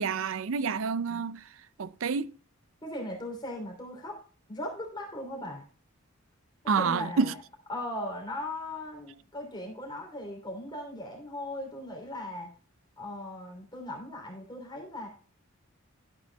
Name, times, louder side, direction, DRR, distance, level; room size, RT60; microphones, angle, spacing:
voice 1, 0.0-1.4 1.8-2.3 6.7-7.3, right 5 dB, 70° right, 0.5 m, -28 dB
voice 2, 2.8-4.2 4.5-5.6 6.8-7.4 7.7-12.5 13.0-15.1, left 1 dB, 20° left, 3.0 m, -38 dB
12.0 x 9.0 x 2.2 m
head